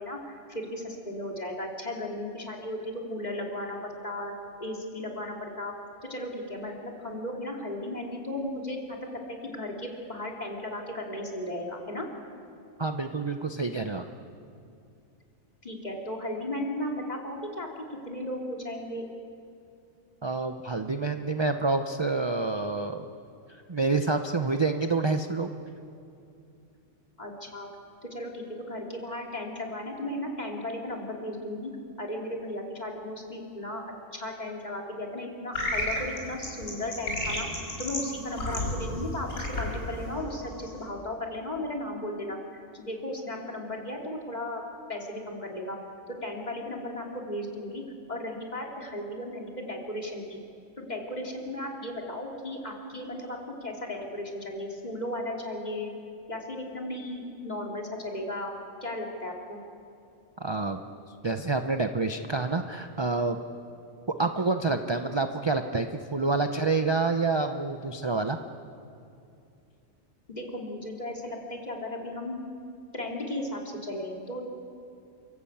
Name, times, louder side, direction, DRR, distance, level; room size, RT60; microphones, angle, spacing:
voice 1, 0.0-3.8 4.0-5.7 6.0-12.1 15.6-17.7 18.0-19.0 27.2-27.7 28.0-31.7 32.0-33.8 34.1-37.5 37.8-44.6 44.9-45.8 46.2-47.8 48.1-50.4 50.8-55.9 56.3-58.5 58.8-59.6 70.3-72.3 72.9-74.6, left 1 dB, 30° left, 0 dB, 3.1 m, -35 dB
voice 2, 12.8-14.0 20.2-23.0 23.7-25.5 60.4-60.8 61.2-63.4 64.2-68.4, right 3 dB, 25° right, 6 dB, 0.6 m, -28 dB
sound 1, 35.5-40.9, left 1 dB, 65° left, 5.7 m, -33 dB
29.0 x 14.5 x 8.6 m, 2.5 s
omnidirectional pair, 1.4 m